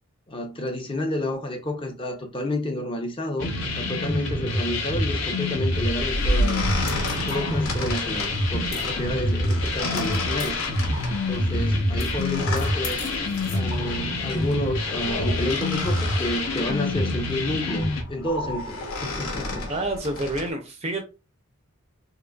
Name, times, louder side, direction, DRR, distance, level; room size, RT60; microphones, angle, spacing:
voice 1, 0.3-6.7 7.1-10.6 11.3-13.0 13.4-19.7, left 1 dB, 25° left, 0.6 m, -30 dB
sound 1, 3.4-18.0, left 2 dB, 60° left, 0.8 m, -26 dB
sound 2, 5.7-20.5, left 1 dB, 75° left, 1.2 m, -32 dB
voice 2, 19.7-21.0, right 1 dB, 30° right, 0.5 m, -28 dB
3.8 x 2.8 x 2.3 m
head